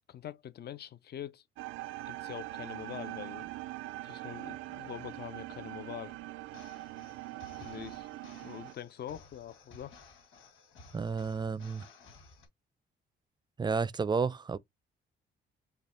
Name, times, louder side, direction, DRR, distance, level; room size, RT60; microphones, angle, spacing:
voice 1, 0.1-1.4 2.0-3.5 4.0-6.2 7.5-8.1 8.4-9.9, left 10 dB, 55° left, 0.7 m, -44 dB
sound 1, 1.6-8.7, right 17 dB, 85° right, 0.5 m, -42 dB
sound 2, 6.5-12.5, left 3 dB, 80° left, 2.5 m, -56 dB
voice 2, 10.9-11.8 13.6-14.6, right 5 dB, 20° right, 0.5 m, -31 dB
5.2 x 2.3 x 4.3 m
cardioid pair, 90°, 20 cm